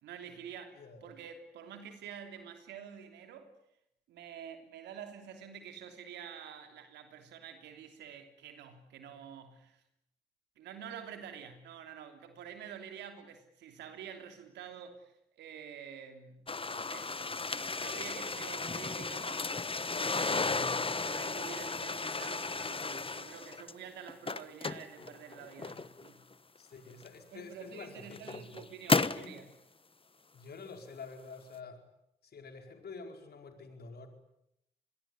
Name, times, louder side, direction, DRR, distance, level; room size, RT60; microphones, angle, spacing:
voice 1, 0.0-3.5 4.1-9.8 10.6-19.4 19.9-26.2 27.3-29.5, right 8 dB, 85° right, 3.2 m, -48 dB
voice 2, 0.7-1.1 26.6-28.7 29.0-29.4 30.3-31.8 32.2-34.1, left 4 dB, 65° left, 5.0 m, -48 dB
sound 1, 16.5-23.7 24.1-26.1 27.0-27.1 27.8-29.3, left 3 dB, 30° left, 1.3 m, -34 dB
26.5 x 22.0 x 9.7 m
supercardioid pair, 40°, 17 cm